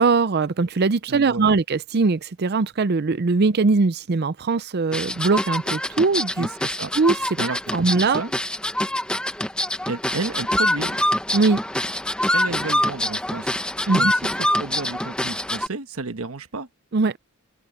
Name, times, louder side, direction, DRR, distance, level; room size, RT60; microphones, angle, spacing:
voice 1, 0.0-6.5 7.0-7.2 7.7-8.2 11.3-11.6 13.9-14.1 16.9-17.2, right 4 dB, 45° right, 0.5 m, -21 dB
voice 2, 1.1-1.5 6.4-6.9 7.4-7.9 8.1-8.3 9.9-11.0 12.3-13.5 13.9-16.7, right 3 dB, 70° right, 1.2 m, -32 dB
sound 1, 4.9-15.7, left 1 dB, 5° left, 0.8 m, -25 dB
open air
head